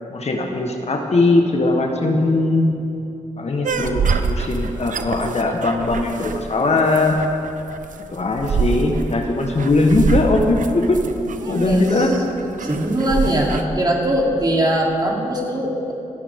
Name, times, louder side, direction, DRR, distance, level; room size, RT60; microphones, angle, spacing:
voice 1, 0.1-2.7 3.4-7.2 8.1-11.0 11.5-12.1, left 2 dB, 50° left, 2 dB, 1.5 m, -19 dB
sound 1, 3.6-13.6, right 5 dB, 65° right, 0.8 m, -26 dB
voice 2, 11.4-12.1 12.6-15.9, right 1 dB, 30° right, -2 dB, 3.4 m, -21 dB
27.0 x 9.9 x 3.7 m, 2.8 s
cardioid pair, 55°, 14 cm